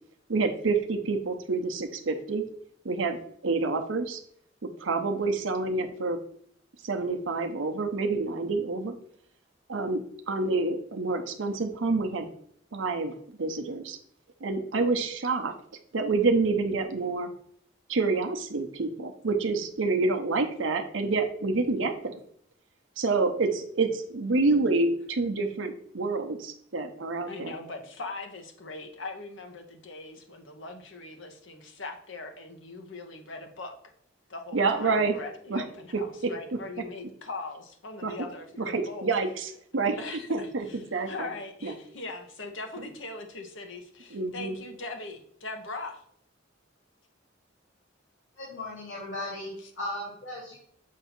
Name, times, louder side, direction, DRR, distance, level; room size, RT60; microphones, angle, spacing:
voice 1, 0.3-2.4 2.8-4.2 4.8-6.2 6.8-8.9 9.7-12.3 12.7-14.0 14.4-15.5 15.9-17.3 17.9-22.2 23.0-27.5 34.5-35.2 35.5-35.6 35.9-36.3 38.0-38.1 38.6-40.0 40.3-41.3 41.6-41.7 42.8-42.9 44.1-44.6, right 3 dB, 70° right, 6 dB, 0.7 m, -28 dB
voice 2, 27.3-33.7 34.3-39.1 40.0-40.8 41.1-46.0 49.6-49.7, left 3 dB, 70° left, 4 dB, 1.0 m, -40 dB
voice 3, 48.3-50.6, left 1 dB, 85° left, -5 dB, 2.8 m, -37 dB
7.4 x 2.7 x 5.8 m, 0.67 s
head